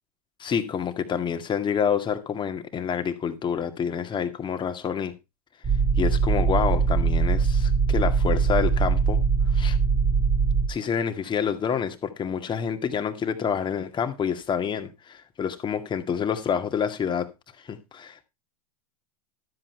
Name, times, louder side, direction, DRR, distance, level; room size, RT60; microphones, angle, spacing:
voice 1, 0.4-5.1 6.0-9.2 9.5-9.8 10.7-17.3 17.6-18.2, left 7 dB, 25° left, 2.0 m, -28 dB
sound 1, 5.6-10.7, right 5 dB, 15° right, 2.1 m, -22 dB
13.0 x 7.7 x 4.5 m
hypercardioid pair, 110°, 20 cm